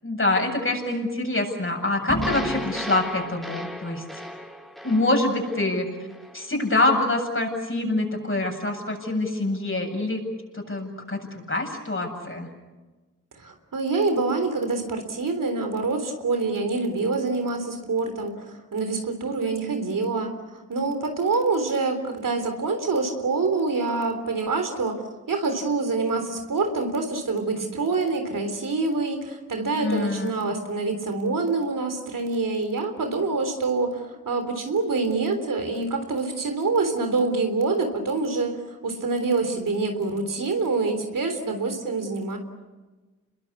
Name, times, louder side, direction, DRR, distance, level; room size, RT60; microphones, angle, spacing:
voice 1, 0.0-4.0 4.8-5.9 6.3-10.2 10.5-12.5 29.8-30.3, left 2 dB, 40° left, 2 dB, 7.9 m, -25 dB
sound 1, 2.1-6.4, equal, ahead, 4.4 m, -34 dB
voice 2, 13.4-25.0 25.3-42.4, right 3 dB, 85° right, 6 dB, 3.6 m, -26 dB
28.0 x 22.0 x 8.4 m, 1.2 s
cardioid pair, 40°, 32 cm